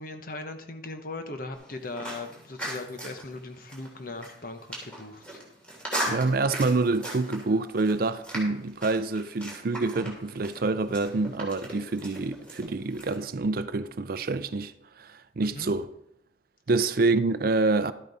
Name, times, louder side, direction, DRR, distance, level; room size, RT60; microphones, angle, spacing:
voice 1, 0.0-5.4 15.4-15.7, left 2 dB, 50° left, 1.0 m, -39 dB
sound 1, 1.5-13.2, right 1 dB, 5° left, 3.1 m, -39 dB
voice 2, 6.1-15.9 16.7-17.9, right 3 dB, 50° right, 0.5 m, -27 dB
12.5 x 8.4 x 4.1 m
head